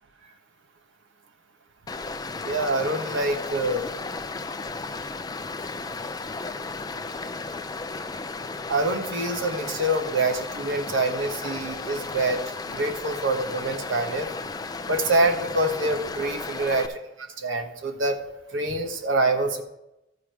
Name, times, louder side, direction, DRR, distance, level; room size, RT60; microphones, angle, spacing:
Stream, 1.9-16.9, left 3 dB, 20° left, 0.4 m, -34 dB
voice 1, 2.4-3.9 8.7-12.4 12.7-14.3 14.9-16.9 17.4-18.2 18.5-19.6, right 2 dB, 75° right, 4 dB, 1.2 m, -25 dB
13.5 x 4.8 x 4.7 m, 0.88 s
head